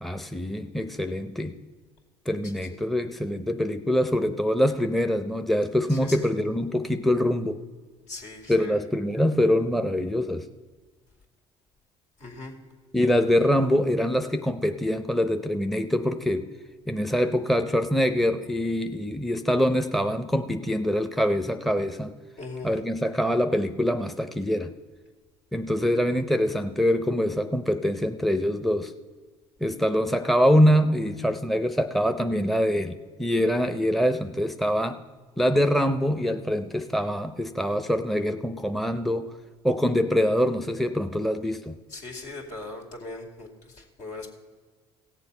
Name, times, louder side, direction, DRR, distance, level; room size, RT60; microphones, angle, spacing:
voice 1, 0.0-1.6 2.3-7.6 8.5-10.5 12.9-16.5 16.9-22.1 22.6-24.7 25.5-28.9 29.6-35.0 35.4-39.3 39.6-41.8, equal, ahead, 7 dB, 0.6 m, -24 dB
voice 2, 2.4-2.8 5.9-6.3 8.1-8.8 12.2-12.5 22.4-22.7 41.9-44.3, left 3 dB, 70° left, 2 dB, 2.5 m, -40 dB
16.5 x 7.2 x 5.4 m, 1.4 s
supercardioid pair, 75°, 13 cm